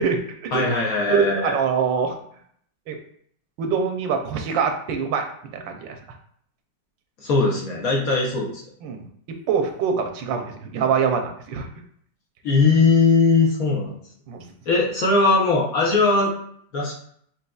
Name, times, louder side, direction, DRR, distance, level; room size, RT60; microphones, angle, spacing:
voice 1, 0.0-0.6 1.1-2.2 2.9-3.0 3.6-5.2 5.5-6.0 8.8-9.0 9.5-11.7 14.3-14.5, right 6 dB, 80° right, 5 dB, 1.3 m, -24 dB
voice 2, 0.5-1.6 7.2-8.6 12.4-13.9 14.7-16.3 16.7-16.9, left 3 dB, 55° left, -2 dB, 1.2 m, -19 dB
6.1 x 2.8 x 2.3 m, 0.64 s
omnidirectional pair, 2.0 m